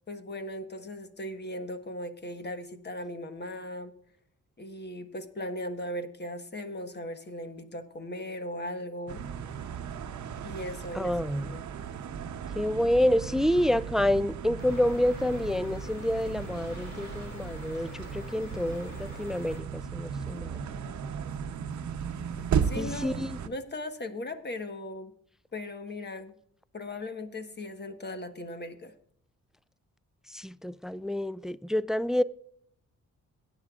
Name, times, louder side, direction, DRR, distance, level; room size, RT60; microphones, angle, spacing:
voice 1, 0.1-3.9 4.6-9.2 10.4-11.1 11.4-11.6 22.6-25.1 25.5-26.4 26.7-28.9, left 1 dB, 35° left, 1.4 m, -38 dB
sound 1, 9.1-23.5, right 7 dB, 65° right, 0.8 m, -36 dB
voice 2, 10.9-11.6 12.5-20.7 22.8-23.4 30.3-32.2, left 1 dB, ahead, 0.3 m, -28 dB
sound 2, 14.6-19.6, left 3 dB, 60° left, 2.3 m, -45 dB
17.5 x 9.2 x 2.4 m
cardioid pair, 75°, 30 cm